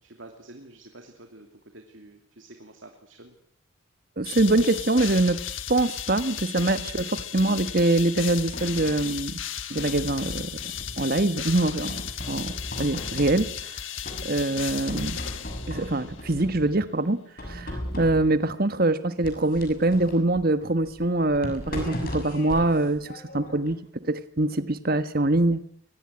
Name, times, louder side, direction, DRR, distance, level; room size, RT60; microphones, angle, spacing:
voice 1, 0.0-3.3, right 2 dB, 65° right, 4 dB, 2.9 m, -48 dB
sound 1, 4.2-16.1, left 9 dB, 65° left, 1.6 m, -35 dB
voice 2, 4.2-5.4 5.7-9.4 9.7-10.6 11.0-13.8 14.2-15.2 15.7-23.8 24.0-25.6, right 2 dB, 45° right, 12 dB, 1.4 m, -24 dB
sound 2, 8.0-9.3 9.8-11.1 11.6-13.7 14.0-14.6 14.9-16.8 17.4-18.5 19.2-23.7, equal, 45° left, 7.0 m, -38 dB
23.5 x 19.5 x 9.8 m, 0.69 s
head